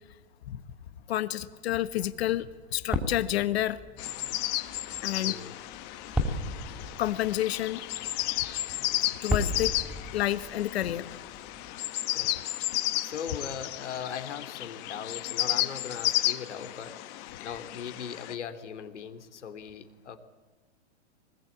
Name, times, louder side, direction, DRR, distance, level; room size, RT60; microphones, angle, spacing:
voice 1, 1.1-3.8 5.0-5.4 7.0-7.8 9.2-9.7 10.1-11.1, left 13 dB, 65° left, 12 dB, 1.3 m, -29 dB
sound 1, 2.1-11.7, left 1 dB, ahead, 2.7 m, -37 dB
sound 2, 4.0-18.3, left 15 dB, 30° left, 1.0 m, -33 dB
voice 2, 5.2-5.5 12.1-12.3 13.0-17.0 17.4-20.2, left 7 dB, 90° left, 8 dB, 2.9 m, -39 dB
24.5 x 20.0 x 8.6 m, 1.3 s
hypercardioid pair, 150°, 34 cm